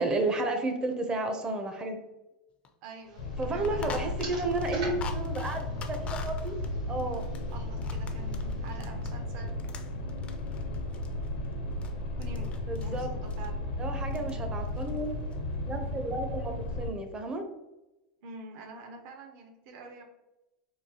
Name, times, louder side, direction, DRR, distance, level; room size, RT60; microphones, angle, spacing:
voice 1, 0.0-2.0 3.4-5.6 5.9-6.6 6.9-7.3 12.7-13.1 13.8-15.2 15.7-17.5, right 2 dB, 20° right, 6 dB, 0.6 m, -32 dB
sound 1, 2.6-2.7 3.0-3.1 3.4-9.2 9.5-11.9 12.2-13.0 13.3-13.5 13.9-14.3 14.6-15.3, left 6 dB, 30° left, 0.4 m, -46 dB
voice 2, 2.8-3.2 3.5-4.1 7.5-9.8 12.1-13.7 18.2-20.0, right 3 dB, 60° right, 4 dB, 0.7 m, -46 dB
sound 2, 3.0-8.8, right 3 dB, 85° right, 1.5 m, -47 dB
sound 3, 3.2-16.9, left 2 dB, 85° left, 0.8 m, -34 dB
3.8 x 2.3 x 2.7 m, 0.98 s
supercardioid pair, 120°, 4 cm